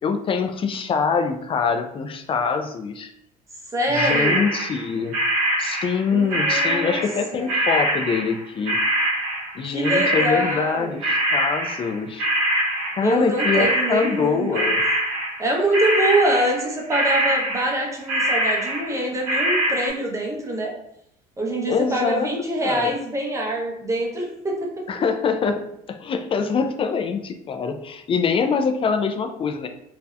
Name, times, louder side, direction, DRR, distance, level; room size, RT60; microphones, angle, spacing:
voice 1, 0.0-3.1 3.9-5.1 5.6-8.8 9.5-12.3 12.9-14.8 21.7-22.3 22.6-22.9 24.9-25.6 25.9-29.7, left 5 dB, 30° left, 6 dB, 0.3 m, -24 dB
voice 2, 3.7-4.5 6.1-7.0 7.3-7.5 9.6-10.9 13.0-14.7 15.4-20.7 21.4-24.7, right 1 dB, 15° right, -1 dB, 0.7 m, -24 dB
sound 1, 3.9-6.0 6.3-13.1 13.4-16.6 16.9-17.8 18.1-19.9, right 1 dB, 75° right, 0.9 m, -23 dB
2.7 x 2.0 x 2.3 m, 0.76 s
supercardioid pair, 80°, 19 cm